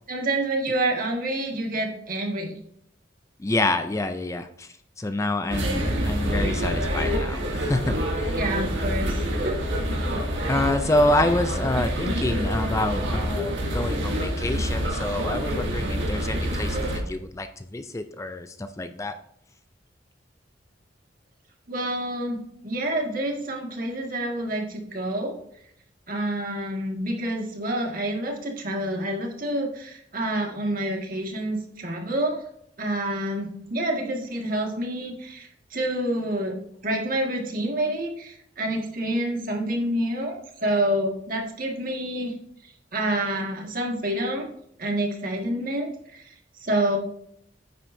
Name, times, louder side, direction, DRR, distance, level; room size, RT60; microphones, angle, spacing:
voice 1, 0.1-2.5 8.4-9.2 9.4-9.6 10.0-10.1 21.7-25.4 26.1-32.4 32.8-42.3 42.9-44.4 44.8-46.2 46.6-47.0, right 1 dB, 50° right, 1 dB, 1.9 m, -28 dB
voice 2, 3.4-8.4 10.5-19.2, left 1 dB, 15° left, 9 dB, 0.4 m, -27 dB
sound 1, 5.5-17.0, equal, 75° right, 2.3 m, -27 dB
9.5 x 9.0 x 2.7 m, 0.70 s
head